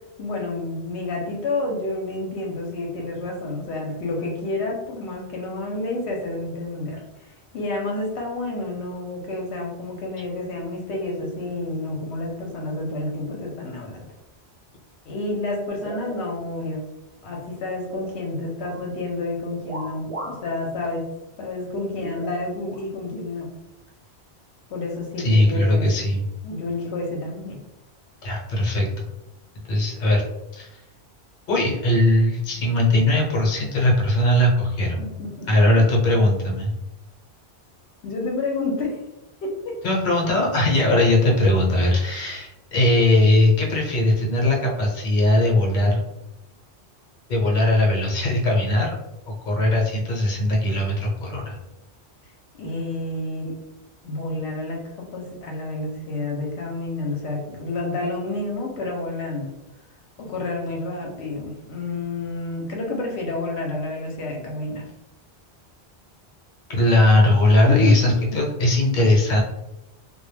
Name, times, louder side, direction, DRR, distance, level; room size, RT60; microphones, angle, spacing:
voice 1, 0.2-14.0 15.1-16.8 17.2-21.1 21.4-23.5 24.7-25.9 26.4-27.6 32.4-32.6 35.0-35.5 38.0-39.0 39.4-39.8 52.6-53.5 54.0-59.5 60.2-64.8 67.6-68.4, left 2 dB, 80° left, -1 dB, 0.8 m, -29 dB
sound 1, 15.7-16.8 17.1-18.2 18.5-18.9 19.6-20.5 20.8-20.9 22.0-22.8 23.7-23.8 24.7-24.9, right 2 dB, 50° right, 0.4 m, -38 dB
voice 2, 25.2-26.2 28.2-29.1 29.7-30.2 30.5-30.8 31.5-35.0 35.5-36.7 39.8-46.0 47.3-48.9 49.3-51.6 66.7-69.4, left 1 dB, 50° left, -2 dB, 0.8 m, -19 dB
2.2 x 2.1 x 3.1 m, 0.91 s
omnidirectional pair, 1.1 m